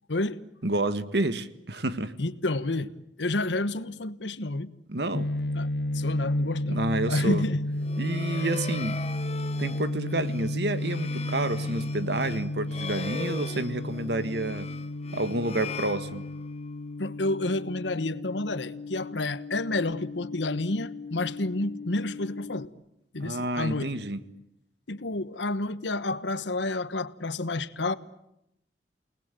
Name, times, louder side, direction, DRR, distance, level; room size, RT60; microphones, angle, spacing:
voice 1, 0.1-0.4 2.2-2.9 3.2-4.7 5.6-6.8 7.1-7.6 8.4-8.5 17.0-22.7 23.1-24.0 24.9-27.9, left 2 dB, 90° left, 1.3 m, -30 dB
voice 2, 0.6-2.1 4.9-5.3 6.7-7.5 8.0-9.0 9.6-14.7 15.1-16.2 23.2-24.2, right 2 dB, 70° right, 1.7 m, -29 dB
sound 1, 5.1-22.6, left 1 dB, 70° left, 1.0 m, -33 dB
sound 2, 7.7-16.7, left 4 dB, 35° left, 1.1 m, -40 dB
29.0 x 20.0 x 9.2 m
head